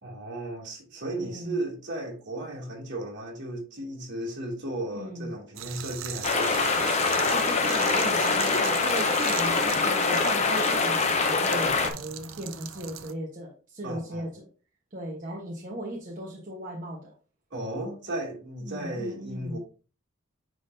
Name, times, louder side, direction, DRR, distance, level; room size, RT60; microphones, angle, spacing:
voice 1, 0.0-7.1 13.8-14.3 17.5-19.6, right 1 dB, 60° right, 2.7 m, -35 dB
voice 2, 1.2-1.6 4.9-5.3 7.3-14.5 14.9-17.1 18.7-19.6, right 1 dB, 40° right, 1.2 m, -37 dB
sound 1, 5.5-13.1, right 10 dB, 75° right, 0.6 m, -39 dB
sound 2, 6.2-11.9, left 4 dB, 35° left, 0.8 m, -24 dB
9.5 x 3.7 x 2.7 m
head